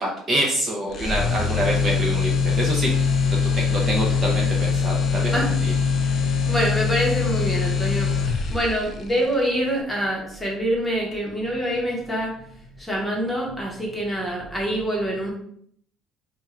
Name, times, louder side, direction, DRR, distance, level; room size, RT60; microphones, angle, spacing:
voice 1, 0.0-3.1 3.5-5.7, right 1 dB, 30° right, -1 dB, 0.6 m, -26 dB
sound 1, 0.9-8.9, left 5 dB, 40° left, 0.4 m, -22 dB
voice 2, 6.1-8.2 8.5-12.4 12.8-15.3, equal, 5° left, -3 dB, 1.0 m, -25 dB
3.5 x 2.3 x 4.3 m, 0.66 s
cardioid pair, 155°, 0 cm